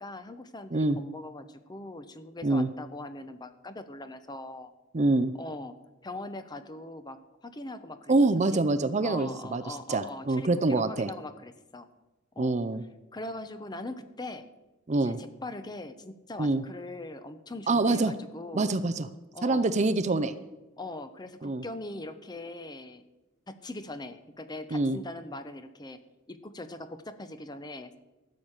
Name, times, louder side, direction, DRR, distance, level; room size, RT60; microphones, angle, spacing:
voice 1, 0.0-4.7 5.4-5.8 6.0-8.1 8.5-8.6 9.0-11.9 12.4-12.5 13.1-14.5 14.9-18.7 19.3-19.8 20.8-23.0 23.5-26.0 26.3-28.0, left 2 dB, 20° left, 11 dB, 0.7 m, -41 dB
voice 2, 4.9-5.3 8.1-11.1 12.4-12.8 14.9-15.2 16.4-16.6 17.7-18.1 18.5-19.1 19.4-20.3 21.4-21.6 24.7-25.0, right 2 dB, 35° right, 12 dB, 0.5 m, -25 dB
13.5 x 6.5 x 8.8 m, 1.0 s
head